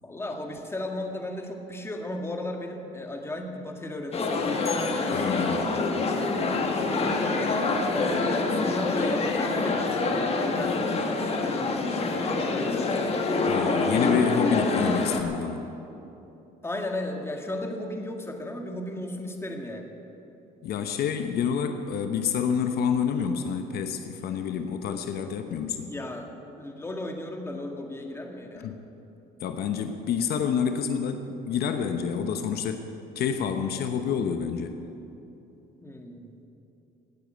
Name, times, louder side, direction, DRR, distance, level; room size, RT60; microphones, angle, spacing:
voice 1, 0.0-4.7 6.7-13.1 16.6-19.9 25.8-26.3 26.6-28.7 35.8-36.3, left 1 dB, 15° left, 3 dB, 1.9 m, -35 dB
sound 1, 4.1-15.2, left 3 dB, 35° left, 1.6 m, -26 dB
voice 2, 5.1-5.7 13.5-15.6 20.6-25.9 28.6-28.8 29.4-32.9 33.1-34.7, left 7 dB, 70° left, 7 dB, 1.0 m, -28 dB
17.0 x 8.5 x 9.1 m, 2.9 s
cardioid pair, 110°, 17 cm